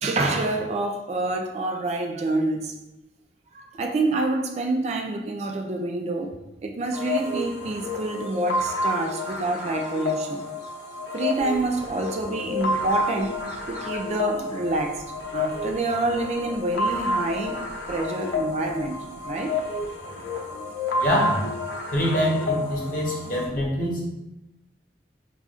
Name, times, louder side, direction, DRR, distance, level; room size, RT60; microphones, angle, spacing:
voice 1, 0.0-2.7 3.5-10.7 11.1-15.0 15.3-17.6 17.9-19.0 19.2-19.6, right 2 dB, 40° right, 3 dB, 0.3 m, -27 dB
sound 1, 6.9-23.5, left 2 dB, 75° left, 0.6 m, -30 dB
voice 2, 21.0-21.5 21.9-24.0, equal, 50° left, -3 dB, 1.0 m, -24 dB
5.5 x 2.4 x 2.4 m, 0.91 s
head